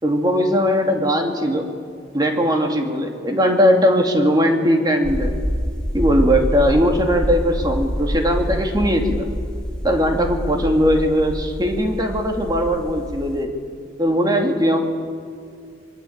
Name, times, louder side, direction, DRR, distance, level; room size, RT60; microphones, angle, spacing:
voice 1, 0.0-1.7 2.1-5.3 5.9-9.3 9.8-13.5 14.0-14.8, equal, 20° right, 3 dB, 2.7 m, -19 dB
sound 1, 5.0-13.4, equal, 5° left, 0.8 m, -26 dB
25.0 x 24.0 x 8.8 m, 2.4 s
head